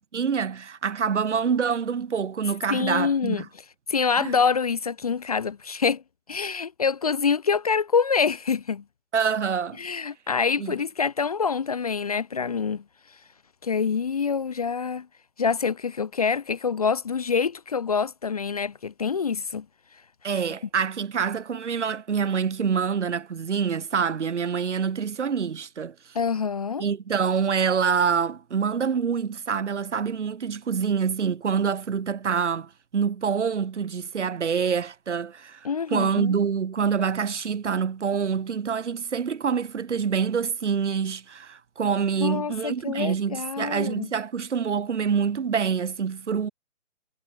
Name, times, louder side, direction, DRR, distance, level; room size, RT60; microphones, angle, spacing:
voice 1, 0.1-3.5 4.2-4.3 9.1-9.8 10.6-10.8 20.2-25.9 26.8-46.5, right 6 dB, 65° right, 2.5 m, -26 dB
voice 2, 2.7-3.4 3.9-6.0 6.3-8.8 9.8-12.8 13.6-15.1 15.4-19.6 20.3-20.4 26.1-26.8 35.6-36.4 42.2-44.1, left 5 dB, 30° left, 0.8 m, -26 dB
hypercardioid pair, 170°, 39 cm